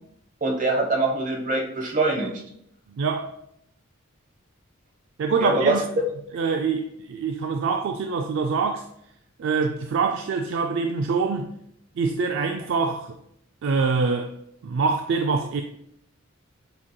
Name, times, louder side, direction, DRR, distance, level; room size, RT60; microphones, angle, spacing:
voice 1, 0.4-2.4 5.4-5.8, right 2 dB, 35° right, 0.9 m, -23 dB
voice 2, 2.9-3.4 5.2-5.8 6.3-8.9 9.4-11.5 12.0-13.2 13.6-14.3 14.6-15.6, right 4 dB, 60° right, 0.3 m, -25 dB
7.1 x 2.9 x 2.2 m
head